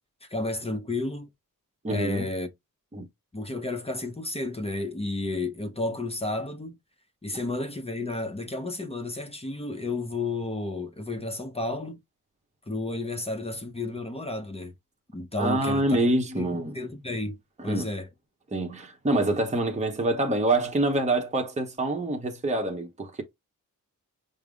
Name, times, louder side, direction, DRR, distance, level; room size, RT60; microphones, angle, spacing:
voice 1, 0.2-1.3 1.9-2.5 3.3-6.8 7.2-12.0 12.7-14.7 15.1-16.0 16.4-16.5 16.7-17.4 17.6-18.1, left 2 dB, 15° left, 0.7 m, -32 dB
voice 2, 1.8-2.3 2.9-3.1 15.4-16.7 17.6-17.9 18.5-23.2, right 2 dB, 20° right, 0.8 m, -26 dB
5.3 x 2.1 x 4.9 m
wide cardioid pair, 175°, 34 cm